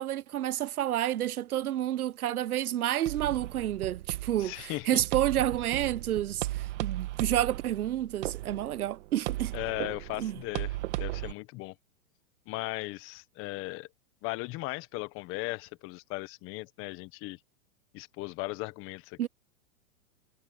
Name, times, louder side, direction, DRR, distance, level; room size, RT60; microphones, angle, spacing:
voice 1, 0.0-9.5 10.2-10.4 19.2-19.3, right 12 dB, 90° right, 0.9 m, -30 dB
sound 1, 3.1-11.3, right 16 dB, 55° right, 1.6 m, -36 dB
voice 2, 4.4-5.0 9.5-11.7 12.5-13.9 14.2-17.4 17.9-19.3, left 22 dB, 30° left, 1.2 m, -37 dB
hypercardioid pair, 140°, 43 cm